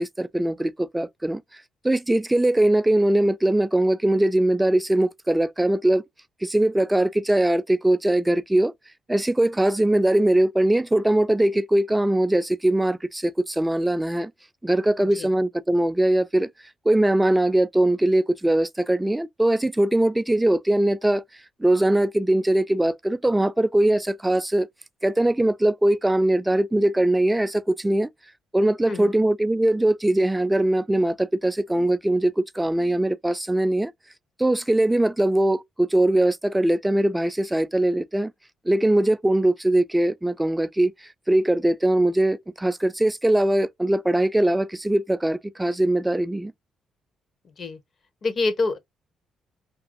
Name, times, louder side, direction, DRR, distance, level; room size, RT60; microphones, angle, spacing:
voice 1, 0.0-1.4 1.8-6.0 6.4-8.7 9.1-14.3 14.6-16.5 16.9-21.2 21.6-24.7 25.0-28.1 28.5-33.9 34.4-38.3 38.7-40.9 41.3-46.5, right 1 dB, 10° right, 0.3 m, -21 dB
voice 2, 28.9-29.2 47.6-47.8 48.2-48.8, left 3 dB, 45° left, 0.8 m, -26 dB
2.8 x 2.6 x 2.4 m
cardioid pair, 90°, 0 cm